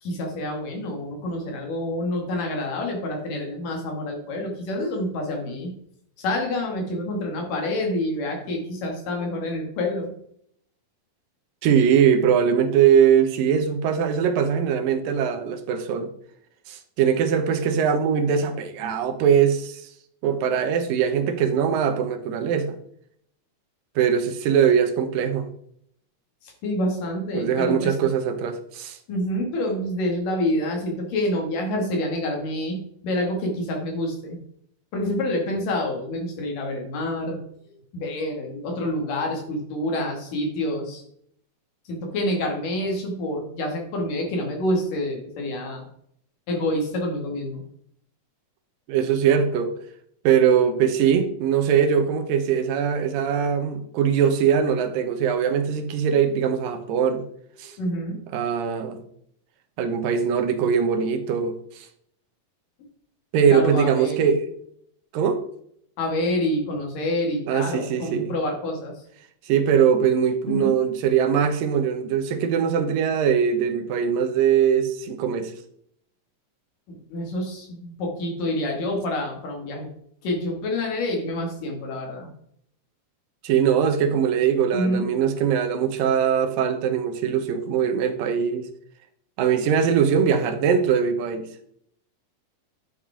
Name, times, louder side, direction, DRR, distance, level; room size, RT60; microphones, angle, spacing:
voice 1, 0.0-5.7 6.2-10.1 26.6-28.0 29.1-32.8 33.0-34.4 34.9-37.4 37.9-41.0 41.9-45.9 46.5-47.6 57.6-58.2 63.5-64.4 66.0-68.9 70.5-70.7 76.9-79.9 80.2-82.3 84.7-85.1, left 1 dB, 75° left, 3.8 m, -27 dB
voice 2, 11.6-16.1 16.7-19.8 20.2-22.8 24.0-25.5 27.3-29.0 48.9-49.7 50.2-57.2 57.6-57.8 58.3-59.0 59.8-61.9 63.3-64.5 65.1-65.4 67.5-68.3 69.5-75.5 83.4-88.7 89.4-91.5, right 7 dB, 85° right, 2.7 m, -21 dB
11.5 x 7.3 x 3.7 m
omnidirectional pair, 3.9 m